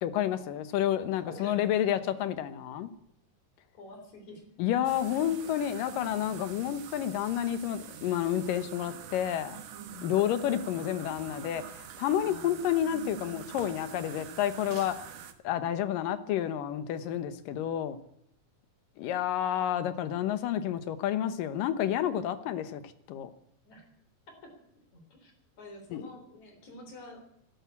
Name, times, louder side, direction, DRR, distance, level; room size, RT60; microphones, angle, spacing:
voice 1, 0.0-2.9 4.6-9.6 10.0-14.9 15.4-18.0 19.0-22.8 23.1-23.3 25.9-26.1, left 10 dB, 80° left, 12 dB, 2.7 m, -30 dB
voice 2, 1.2-1.6 3.7-4.4 9.7-10.1 12.2-12.7 23.6-23.9 24.4-24.5 24.9-25.3 25.6-27.2, left 1 dB, 60° left, 4 dB, 5.0 m, -48 dB
sound 1, 4.8-15.3, right 9 dB, 75° right, 2.8 m, -46 dB
13.0 x 12.0 x 8.6 m, 0.73 s
omnidirectional pair, 3.8 m